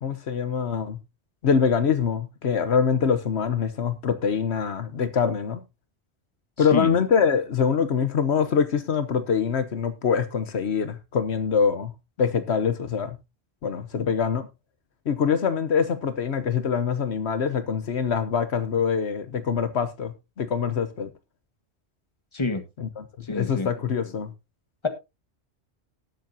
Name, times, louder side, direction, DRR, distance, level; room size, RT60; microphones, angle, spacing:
voice 1, 0.0-1.0 1.4-5.6 6.6-11.9 12.2-13.2 13.6-14.5 15.1-21.1 22.8-24.3, left 6 dB, 70° left, 1.2 m, -24 dB
voice 2, 6.6-7.0 22.3-22.6 23.3-23.7, left 2 dB, 25° left, 1.6 m, -28 dB
19.0 x 7.5 x 2.7 m
omnidirectional pair, 1.1 m